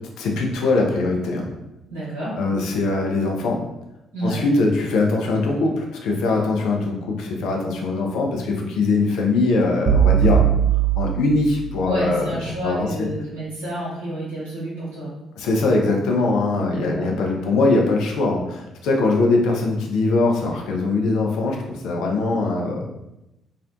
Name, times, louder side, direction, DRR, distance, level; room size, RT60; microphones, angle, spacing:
voice 1, 0.2-1.5 2.3-3.6 4.2-10.4 11.0-12.4 12.6-13.1 15.4-22.9, left 3 dB, 60° left, 0 dB, 0.4 m, -21 dB
voice 2, 1.9-2.4 4.1-4.4 11.8-15.1 16.7-17.1, right 1 dB, 80° right, -9 dB, 0.9 m, -29 dB
sound 1, 9.9-12.1, right 9 dB, 50° right, 0.4 m, -19 dB
2.4 x 2.0 x 2.5 m, 0.94 s
figure-of-eight pair, 45°, 0 cm